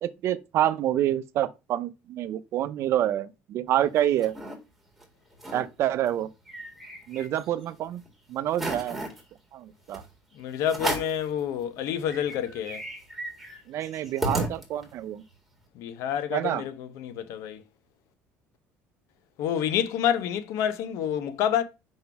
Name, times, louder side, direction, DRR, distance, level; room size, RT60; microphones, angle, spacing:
voice 1, 0.0-4.3 5.5-6.3 7.1-8.0 8.3-9.0 9.5-10.0 13.7-15.2 16.3-16.6, right 12 dB, 55° right, 0.6 m, -27 dB
sound 1, 3.7-4.6 5.0-5.1 5.3-5.7 6.1-7.7 8.1-8.2 8.5-9.2 9.9-10.1 10.7-11.2 11.7-11.8 12.0-15.0, right 1 dB, ahead, 2.0 m, -34 dB
voice 2, 10.4-12.8 15.7-17.6 19.4-21.6, left 9 dB, 70° left, 0.8 m, -28 dB
5.3 x 3.8 x 5.8 m
cardioid pair, 120°, 5 cm